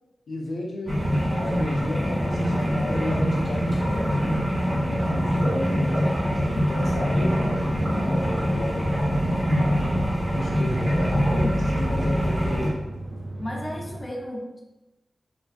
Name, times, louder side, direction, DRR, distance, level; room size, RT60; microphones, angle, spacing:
voice 1, 0.3-4.4 4.8-6.1 6.5-9.7 10.3-12.8, left 1 dB, 80° left, 0 dB, 0.5 m, -33 dB
sound 1, 0.8-14.0, right 2 dB, 80° right, 0.3 m, -37 dB
sound 2, 0.9-12.7, equal, 15° right, 1.0 m, -24 dB
voice 2, 13.4-14.6, left 1 dB, 35° left, -1 dB, 0.6 m, -34 dB
2.4 x 2.2 x 2.4 m, 1.0 s
cardioid pair, 40°, 0 cm